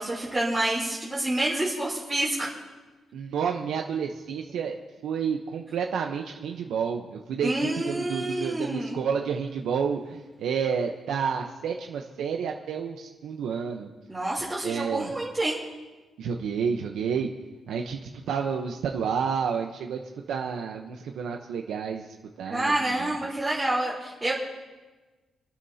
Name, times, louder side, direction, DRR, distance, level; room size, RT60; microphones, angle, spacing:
voice 1, 0.0-2.5 7.4-9.0 14.1-15.6 22.5-24.3, right 1 dB, 15° right, -9 dB, 3.4 m, -28 dB
voice 2, 3.1-4.8 5.0-13.9 14.6-15.1 16.2-17.3 17.7-20.0 20.3-22.1 22.4-22.7 23.0-23.1, right 6 dB, 90° right, 2 dB, 0.9 m, -30 dB
27.0 x 12.5 x 2.8 m, 1.2 s
wide cardioid pair, 155°, 0 cm